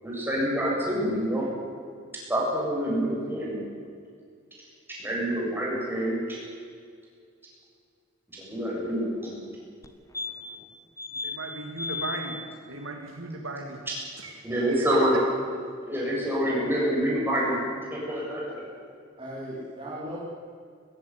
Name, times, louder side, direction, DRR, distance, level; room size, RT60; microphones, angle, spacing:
voice 1, 0.0-1.5 2.3-3.6 4.9-6.4 8.3-9.4 13.9-14.0 14.4-15.1 15.8-17.6 17.9-18.4, equal, 10° right, -4 dB, 7.8 m, -27 dB
sound 1, 9.8-9.9 10.1-10.6 11.0-11.4 11.8-12.2 14.6-14.7 14.9-15.0, left 4 dB, 15° left, 1.5 m, -34 dB
voice 2, 11.2-13.9 14.2-15.2, right 2 dB, 75° right, 3 dB, 2.4 m, -36 dB
voice 3, 18.4-18.7 19.2-20.2, equal, 25° right, -6 dB, 4.1 m, -38 dB
20.5 x 15.5 x 9.8 m, 2.2 s
head